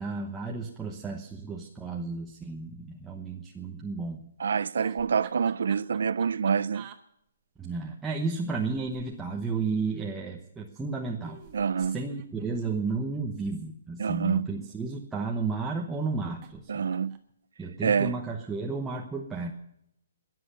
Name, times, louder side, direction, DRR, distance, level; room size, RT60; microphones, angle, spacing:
voice 1, 0.0-4.2 7.6-11.4 11.9-16.7 17.6-19.5, right 4 dB, 5° right, 1.0 m, -33 dB
voice 2, 4.4-6.9 11.5-12.0 14.0-14.5 16.7-17.2 17.8-18.1, right 6 dB, 70° right, 0.5 m, -27 dB
sound 1, 4.8-7.0 8.4-10.0 11.2-13.5 14.4-15.4 16.4-16.6 16.9-17.3, right 10 dB, 25° right, 1.3 m, -50 dB
21.5 x 7.7 x 6.7 m
hypercardioid pair, 170°, 0 cm